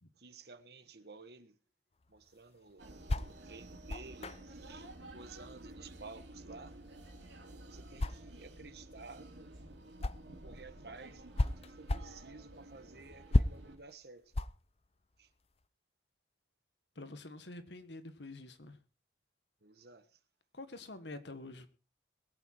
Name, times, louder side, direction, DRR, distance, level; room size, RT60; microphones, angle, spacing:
voice 1, 0.1-1.6 2.1-2.8 3.3-6.8 7.7-9.3 10.4-14.3 15.2-15.3 19.6-20.2, right 3 dB, 60° right, 1.5 m, -53 dB
sound 1, 2.0-10.5 10.9-15.7, left 2 dB, 35° left, 0.6 m, -36 dB
sound 2, 2.8-13.8, right 1 dB, 75° right, 3.3 m, -52 dB
voice 2, 16.9-18.8 20.5-21.7, left 2 dB, 70° left, 1.7 m, -47 dB
21.5 x 8.9 x 4.5 m
head